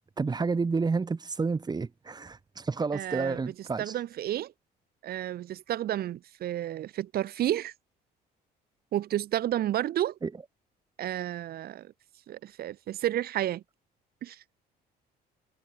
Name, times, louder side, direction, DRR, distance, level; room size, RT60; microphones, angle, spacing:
voice 1, 0.2-3.9 10.2-10.3, right 4 dB, 25° right, 4.1 m, -30 dB
voice 2, 2.9-4.5 5.0-7.7 8.9-10.2 11.0-11.9 12.3-13.6 14.2-14.4, right 12 dB, 65° right, 5.3 m, -31 dB
cardioid pair, 110°, 17 cm